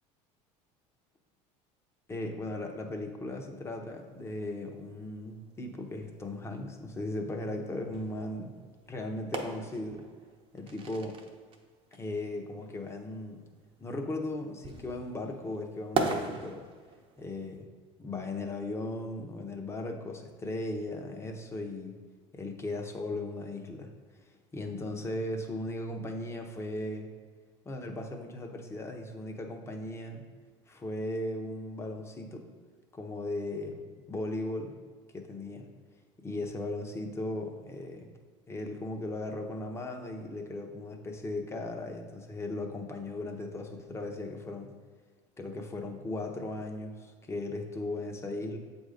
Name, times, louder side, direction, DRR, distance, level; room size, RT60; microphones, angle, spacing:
voice 1, 2.1-8.5 8.9-10.0 10.5-11.2 11.9-13.4 13.8-16.6 17.2-17.6 18.0-22.0 22.3-23.9 24.5-27.1 27.6-30.2 30.7-32.5 32.9-33.8 34.1-34.7 35.1-35.6 36.2-38.1 38.5-44.7 45.4-48.6, left 2 dB, 15° left, 3 dB, 0.8 m, -37 dB
sound 1, 3.9-17.6, right 4 dB, 35° right, 0.7 m, -40 dB
7.4 x 2.7 x 5.0 m, 1.5 s
supercardioid pair, 100°, 15 cm